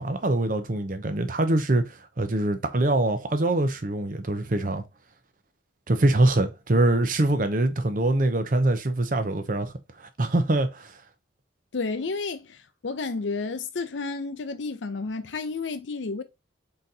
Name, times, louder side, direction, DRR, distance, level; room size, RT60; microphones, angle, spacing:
voice 1, 0.0-4.8 5.9-9.7 10.0-11.0, right 2 dB, 45° right, 0.7 m, -24 dB
voice 2, 11.7-12.6 12.8-16.2, left 4 dB, 85° left, 0.6 m, -31 dB
3.9 x 3.9 x 2.8 m
head